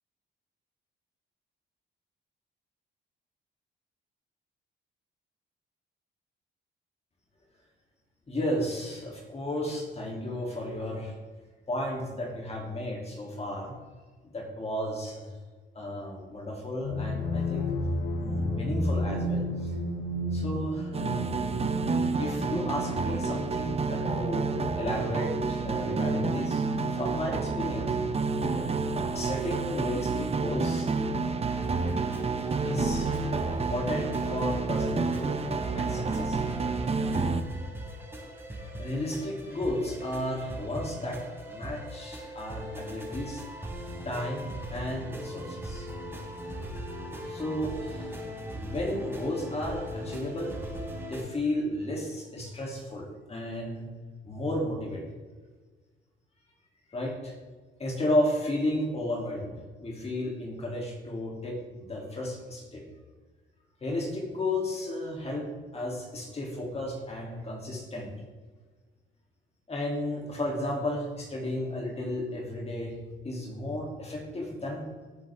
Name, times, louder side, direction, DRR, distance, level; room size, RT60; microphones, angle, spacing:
voice 1, 8.3-11.2 11.7-13.7 14.3-15.4 15.7-17.7 18.2-19.7 20.3-21.5 22.2-26.6 26.9-27.9 29.1-30.9 32.2-32.3 32.6-35.4 35.7-36.7 38.8-41.2 41.5-43.4 44.0-45.9 47.3-48.2 48.5-50.6 51.1-53.9 54.2-55.0 56.9-57.4 57.8-59.5 59.8-62.8 63.8-68.1 69.7-72.9 73.2-74.9, left 1 dB, 30° left, -1 dB, 2.9 m, -33 dB
sound 1, 16.8-24.5, left 1 dB, 80° left, 2.6 m, -32 dB
sound 2, 20.9-37.4, right 4 dB, 30° right, 0.9 m, -29 dB
sound 3, 31.5-51.2, equal, 10° right, 4.3 m, -40 dB
18.5 x 7.8 x 3.6 m, 1.4 s
cardioid pair, 90°, 20 cm